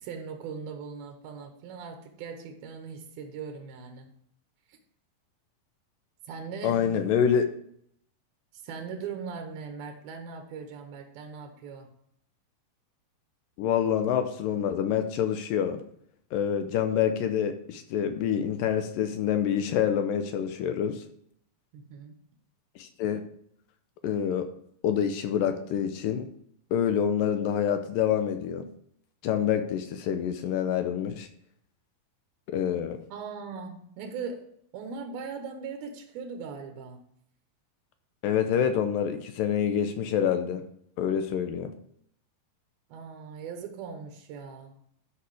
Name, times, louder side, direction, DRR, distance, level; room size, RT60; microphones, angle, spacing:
voice 1, 0.0-4.1 4.7-4.8 6.2-7.0 8.6-11.9 21.7-22.2 33.1-34.4 34.7-37.0 42.9-44.7, right 5 dB, 85° right, 4 dB, 3.0 m, -39 dB
voice 2, 6.6-7.5 13.6-15.8 16.3-21.0 22.8-23.2 24.0-24.5 24.8-26.3 26.7-28.7 29.2-31.3 32.5-33.0 38.2-40.6 41.0-41.7, left 8 dB, 80° left, 8 dB, 2.3 m, -27 dB
12.5 x 5.8 x 4.8 m, 0.68 s
omnidirectional pair, 4.2 m